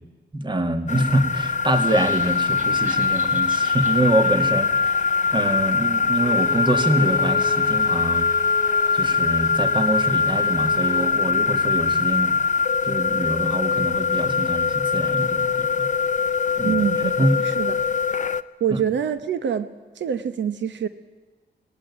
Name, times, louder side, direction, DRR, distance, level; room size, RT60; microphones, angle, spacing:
voice 1, 0.3-4.9 5.3-8.3 8.9-12.3 12.8-15.7 16.6-16.8 17.2-17.3, right 1 dB, 25° right, 7 dB, 1.9 m, -25 dB
sound 1, 0.9-18.4, left 5 dB, 40° left, 0.6 m, -22 dB
sound 2, 1.6-5.9, right 2 dB, 45° right, 3.6 m, -43 dB
Bowed string instrument, 6.2-11.2, left 2 dB, 20° left, 1.1 m, -35 dB
voice 2, 16.6-17.8 18.6-19.7 19.9-20.9, right 8 dB, 80° right, 11 dB, 1.0 m, -25 dB
18.5 x 16.5 x 9.7 m, 1.3 s
wide cardioid pair, 120°, 18 cm